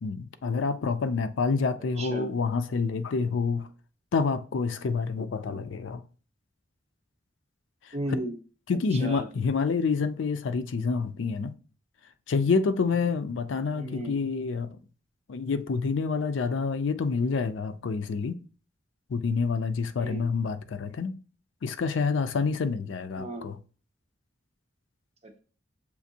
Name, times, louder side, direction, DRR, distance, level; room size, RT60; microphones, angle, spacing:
voice 1, 0.0-3.7 4.1-6.0 8.7-11.5 12.3-14.7 15.3-18.4 19.1-21.2 21.6-23.6, left 4 dB, 85° left, 0.4 m, -28 dB
voice 2, 2.0-2.3 7.9-8.4 8.7-9.3 13.7-14.2 20.0-20.3 23.1-23.5 25.2-25.4, right 1 dB, 35° right, 0.7 m, -35 dB
6.9 x 2.5 x 2.7 m
head